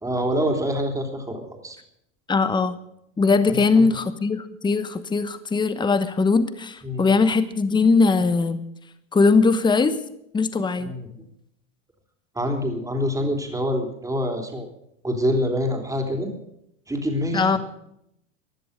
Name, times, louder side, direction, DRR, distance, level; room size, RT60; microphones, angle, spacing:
voice 1, 0.0-1.8 3.5-3.9 6.8-7.1 10.8-11.1 12.3-14.7 15.0-16.3 16.9-17.6, equal, 10° right, 3 dB, 3.3 m, -26 dB
voice 2, 2.3-2.7 3.2-8.6 9.1-10.0 10.3-10.9 17.3-17.6, left 4 dB, 10° left, 12 dB, 1.0 m, -20 dB
16.0 x 11.0 x 6.7 m, 0.77 s
hypercardioid pair, 105°, 38 cm